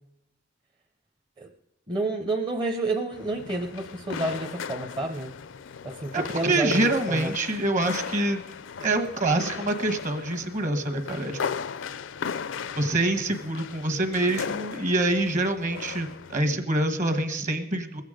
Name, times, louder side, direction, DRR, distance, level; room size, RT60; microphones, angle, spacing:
voice 1, 1.9-5.3 5.8-7.3, right 2 dB, 25° right, 2 dB, 0.7 m, -29 dB
sound 1, 3.1-16.4, left 6 dB, 70° left, 0.5 m, -37 dB
voice 2, 6.1-8.4 8.8-11.4 12.8-18.0, right 2 dB, 40° right, 7 dB, 1.4 m, -26 dB
20.5 x 8.2 x 5.0 m, 0.88 s
head